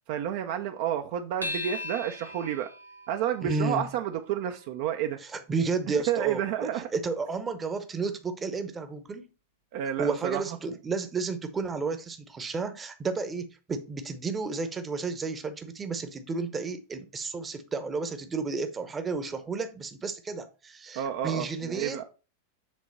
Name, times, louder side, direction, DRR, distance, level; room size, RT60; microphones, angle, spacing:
voice 1, 0.1-2.7 3.1-5.2 5.9-6.9 9.7-10.6 20.9-22.0, right 10 dB, 50° right, 0.5 m, -30 dB
sound 1, 1.4-6.2, left 2 dB, 90° right, 0.9 m, -41 dB
voice 2, 3.4-3.9 5.3-9.3 10.0-22.0, right 4 dB, 20° right, 0.8 m, -32 dB
7.3 x 3.8 x 4.2 m
figure-of-eight pair, 90°, 0 cm